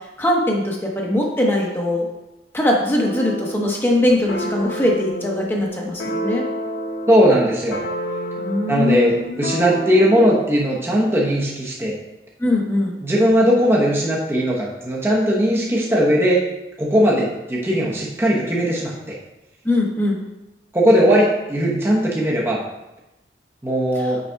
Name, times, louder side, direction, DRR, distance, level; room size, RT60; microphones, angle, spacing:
voice 1, 0.2-2.1 2.5-6.4 8.4-9.5 12.4-13.0 19.6-20.2, left 1 dB, 15° left, -2 dB, 1.1 m, -21 dB
sound 1, 3.0-3.6 4.3-10.5, equal, 80° left, 1.1 m, -29 dB
voice 2, 7.1-7.8 8.7-11.9 13.0-16.4 16.8-19.2 20.7-22.6 23.6-24.2, equal, 15° right, -5 dB, 1.0 m, -18 dB
6.5 x 4.0 x 4.6 m, 0.95 s
head